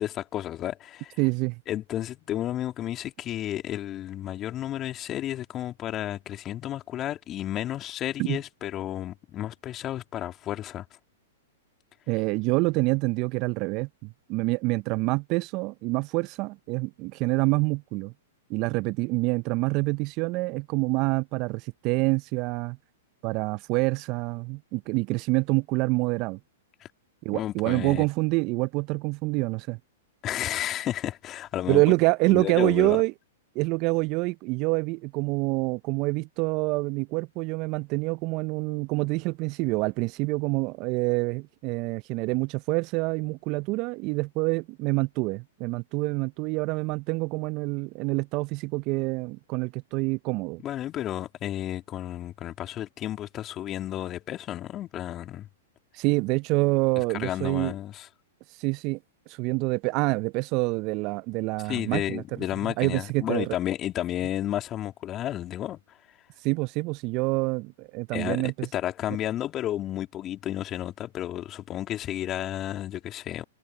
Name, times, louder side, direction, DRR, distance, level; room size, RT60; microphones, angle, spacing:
voice 1, 0.0-1.2 1.7-10.8 26.8-26.9 27.3-28.1 30.2-31.8 32.3-33.0 50.6-55.5 57.0-58.1 61.7-65.8 68.1-73.4, left 12 dB, 30° left, 3.0 m, -32 dB
voice 2, 1.2-1.6 8.2-8.4 12.1-18.1 18.5-22.8 23.2-26.4 27.2-29.8 31.7-33.1 33.5-50.6 55.9-57.7 58.6-59.0 59.3-62.2 62.6-63.6 66.4-68.7, right 25 dB, 40° right, 0.7 m, -26 dB
hypercardioid pair, 110°, 0 cm